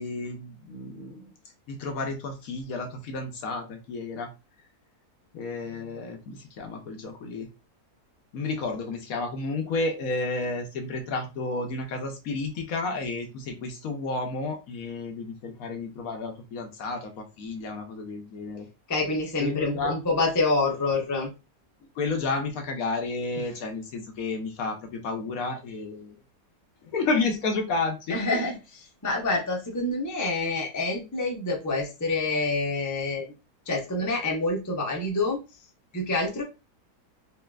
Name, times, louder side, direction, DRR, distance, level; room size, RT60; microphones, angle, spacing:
voice 1, 0.0-1.3 1.7-4.3 5.3-7.5 8.3-18.7 19.4-19.9 22.0-26.2 26.8-28.5, left 3 dB, 65° left, 3 dB, 1.1 m, -31 dB
voice 2, 18.9-21.3 23.4-23.5 28.1-28.5 29.0-33.2 33.7-35.4 35.9-36.4, left 3 dB, 25° left, 0 dB, 0.4 m, -27 dB
4.2 x 2.4 x 2.2 m, 0.28 s
omnidirectional pair, 1.7 m